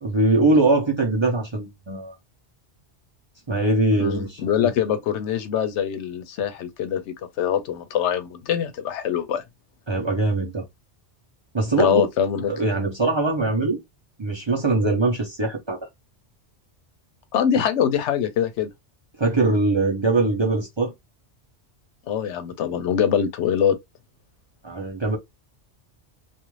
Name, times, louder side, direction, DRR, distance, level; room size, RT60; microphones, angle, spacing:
voice 1, 0.0-2.1 3.5-4.7 9.9-10.7 11.5-12.1 12.5-13.8 14.2-15.8 19.2-20.9 24.6-25.2, right 2 dB, 30° right, 0.6 m, -22 dB
voice 2, 4.0-9.4 11.8-12.5 17.3-18.7 22.1-23.8, left 8 dB, 85° left, 0.9 m, -23 dB
2.5 x 2.3 x 3.0 m
omnidirectional pair, 1.1 m